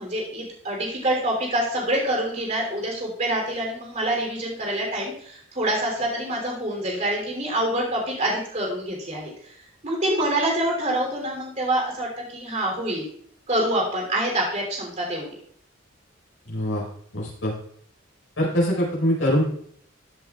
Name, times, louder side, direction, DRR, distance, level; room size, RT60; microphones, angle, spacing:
voice 1, 0.0-9.5 9.8-13.0 13.5-15.3, right 1 dB, 35° right, -1 dB, 3.3 m, -26 dB
voice 2, 16.5-16.8 17.1-17.5 18.4-19.4, equal, 70° left, -4 dB, 4.8 m, -23 dB
14.5 x 8.2 x 2.4 m, 0.62 s
head